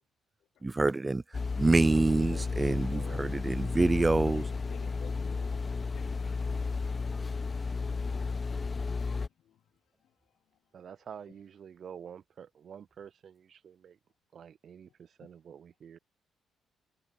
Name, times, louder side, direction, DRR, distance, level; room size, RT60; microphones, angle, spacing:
voice 1, 0.6-1.2 1.6-4.4, right 3 dB, 20° right, 0.5 m, -26 dB
sound 1, 1.3-9.3, left 4 dB, 30° left, 0.9 m, -33 dB
voice 2, 1.9-3.4 10.7-14.0 14.3-16.0, right 8 dB, 55° right, 4.5 m, -48 dB
voice 3, 4.1-7.5 9.3-10.8 11.1-11.3 15.2-15.3, left 12 dB, 75° left, 6.0 m, -56 dB
cardioid pair, 90°, 0 cm